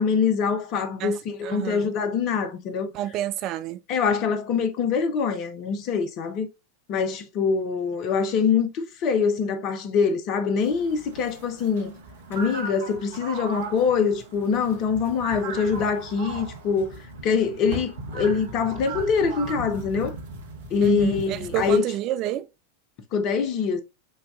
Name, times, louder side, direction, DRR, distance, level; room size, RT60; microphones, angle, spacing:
voice 1, 0.0-2.9 3.9-6.5 6.9-12.0 12.3-20.1 20.7-21.8 23.1-23.8, left 5 dB, 40° left, 0.6 m, -24 dB
voice 2, 1.4-1.9 2.9-3.8 20.8-22.5, right 13 dB, 40° right, 0.3 m, -29 dB
sound 1, 10.6-21.8, right 3 dB, 60° right, 0.8 m, -37 dB
6.2 x 2.3 x 2.4 m
figure-of-eight pair, 90°, 0 cm